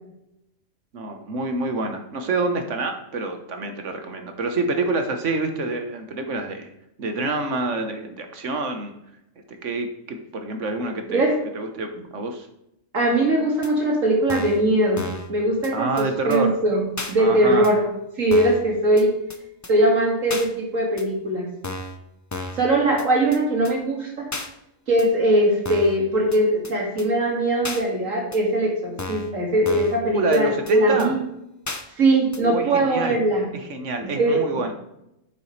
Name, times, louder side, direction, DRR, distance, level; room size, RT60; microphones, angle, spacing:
voice 1, 0.9-6.7 7.0-8.9 9.6-11.2 11.5-12.5 15.7-16.6 17.2-17.7 30.0-31.1 32.4-33.2 33.5-34.7, right 3 dB, 70° right, 6 dB, 1.5 m, -27 dB
voice 2, 12.9-15.0 15.3-17.9 18.2-19.1 19.7-21.5 22.6-24.3 24.9-31.2 32.0-33.5 34.0-34.6, right 1 dB, 85° right, -1 dB, 2.7 m, -21 dB
sound 1, 13.6-13.7 14.3-14.6 15.0-15.3 15.6-15.7 16.0-16.1 16.3-16.4 17.0-17.1 17.6-17.7 18.3-18.6 19.0-19.1 19.3-19.4 19.6-19.7 20.3-20.5 21.0-21.1 21.6-22.0 22.3-22.6 23.0-23.1 23.3-23.4 23.6-23.7 24.3-24.5 25.0-25.1 25.7-26.0 26.3-26.4 26.6-26.7 27.0-27.1 27.6-27.8 28.3-28.4 29.0-29.3 29.7-30.0 30.3-30.4 30.7-30.8 31.0-31.1 31.7-31.8 32.3-32.4, left 2 dB, 20° left, 0.5 m, -32 dB
9.0 x 7.0 x 3.3 m, 0.84 s
omnidirectional pair, 1.3 m